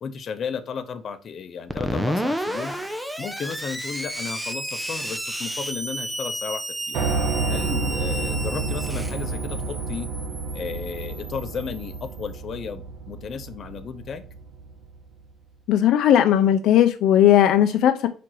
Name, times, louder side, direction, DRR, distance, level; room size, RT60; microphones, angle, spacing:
voice 1, 0.0-2.7 3.2-7.0 7.5-10.1 10.5-14.2, left 6 dB, 45° left, 9 dB, 0.8 m, -34 dB
Screech, 1.7-12.2, equal, 5° right, 0.7 m, -32 dB
Piano, 6.9-14.9, right 4 dB, 80° right, 1.3 m, -30 dB
voice 2, 15.7-18.1, left 11 dB, 75° left, 8 dB, 0.5 m, -17 dB
5.1 x 4.6 x 4.5 m, 0.37 s
cardioid pair, 130°, 0 cm